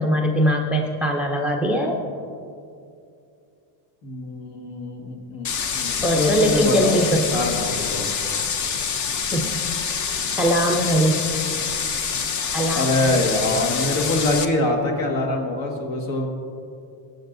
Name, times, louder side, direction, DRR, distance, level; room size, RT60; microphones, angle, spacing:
voice 1, 0.0-2.0 6.0-7.3 9.3-9.6 10.4-11.3 12.5-13.1, equal, 5° right, 2 dB, 0.4 m, -21 dB
voice 2, 4.0-5.5 5.7-7.1 7.3-8.1 12.7-16.3, left 2 dB, 65° left, 1 dB, 1.9 m, -24 dB
sound 1, 5.4-14.5, left 6 dB, 35° left, 0.6 m, -26 dB
19.0 x 7.5 x 2.6 m, 2.5 s
cardioid pair, 135°, 50 cm